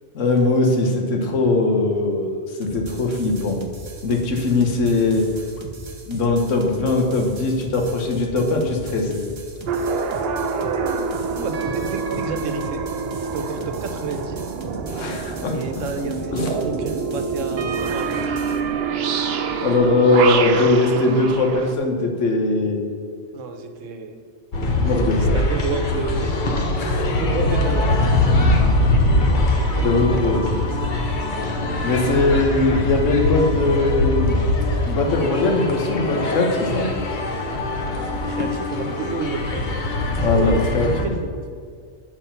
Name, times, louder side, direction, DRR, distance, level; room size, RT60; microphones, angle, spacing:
voice 1, 0.1-3.6 4.0-5.3 6.1-9.3 14.9-15.6 16.3-16.5 19.2-22.9 24.8-25.4 26.8-27.0 29.8-30.7 31.8-34.4 34.9-36.9 40.2-41.1, left 2 dB, 90° left, 2 dB, 1.3 m, -20 dB
sound 1, 2.6-18.6, right 3 dB, 35° right, 0.5 m, -38 dB
sound 2, 9.7-21.7, right 5 dB, 60° right, 0.8 m, -26 dB
voice 2, 11.2-12.8 13.2-14.5 15.5-18.2 23.3-24.1 25.3-28.2 29.8-30.7 38.3-39.6 40.3-41.2, right 4 dB, 85° right, 7 dB, 1.1 m, -30 dB
sound 3, 24.5-41.1, left 2 dB, 45° left, 0.9 m, -22 dB
7.2 x 4.8 x 5.6 m, 2.1 s
omnidirectional pair, 1.3 m